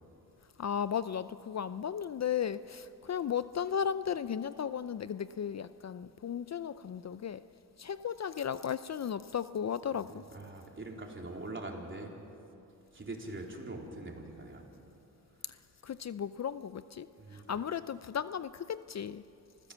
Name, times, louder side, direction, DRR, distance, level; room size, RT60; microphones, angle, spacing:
voice 1, 0.6-7.4 7.8-10.2 15.5-19.2, left 8 dB, 50° left, 0.6 m, -35 dB
voice 2, 10.1-12.1 12.9-14.7 17.2-17.5, right 2 dB, 35° right, 3.8 m, -43 dB
27.5 x 15.5 x 7.4 m
cardioid pair, 70°, 36 cm